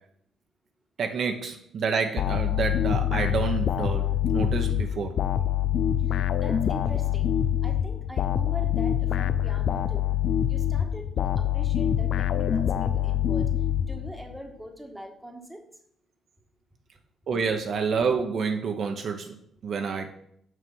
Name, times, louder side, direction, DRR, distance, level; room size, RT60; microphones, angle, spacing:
voice 1, 1.0-5.2 17.3-19.3 19.6-20.1, right 5 dB, 60° right, 5 dB, 0.9 m, -28 dB
sound 1, 2.2-14.4, left 10 dB, 65° left, 0.5 m, -25 dB
voice 2, 6.1-7.3 7.6-10.1 10.5-13.5 13.9-15.6, equal, 5° right, 2 dB, 1.5 m, -42 dB
6.3 x 5.6 x 5.4 m, 0.70 s
cardioid pair, 90°, 0 cm